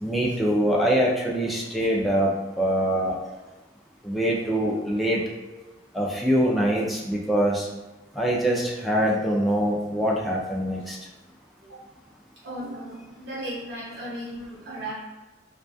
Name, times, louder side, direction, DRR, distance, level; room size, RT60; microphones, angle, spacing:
voice 1, 0.0-3.1 4.0-5.2 5.9-7.7 8.2-11.0, equal, ahead, -4 dB, 0.4 m, -24 dB
voice 2, 12.4-14.9, right 1 dB, 70° right, -7 dB, 1.1 m, -36 dB
2.4 x 2.3 x 2.3 m, 1.2 s
head